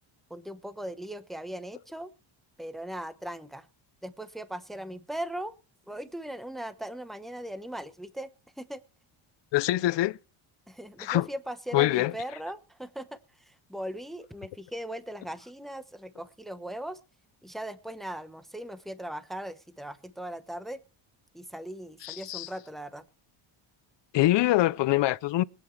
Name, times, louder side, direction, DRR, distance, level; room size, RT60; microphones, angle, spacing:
voice 1, 0.3-2.1 2.6-3.7 4.0-5.5 5.9-8.3 8.6-8.8 10.7-17.0 17.4-20.8 21.3-23.0, right 1 dB, ahead, 1.0 m, -39 dB
voice 2, 9.5-10.2 11.0-11.2 11.7-12.1 22.0-22.5 24.1-25.4, left 16 dB, 60° left, 0.6 m, -24 dB
21.5 x 9.2 x 3.3 m
cardioid pair, 120°, 50 cm